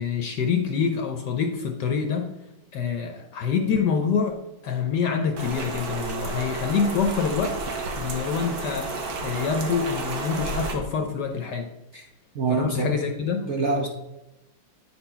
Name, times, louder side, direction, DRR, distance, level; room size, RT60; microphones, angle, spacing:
voice 1, 0.0-2.3 2.7-7.6 7.9-11.7 12.5-13.5, left 6 dB, 65° left, 4 dB, 1.2 m, -26 dB
Rain, 5.4-10.7, right 3 dB, 80° right, 2.0 m, -31 dB
voice 2, 12.3-12.9 13.5-13.9, right 3 dB, 60° right, 2 dB, 0.7 m, -25 dB
9.0 x 4.3 x 5.5 m, 0.98 s
omnidirectional pair, 2.1 m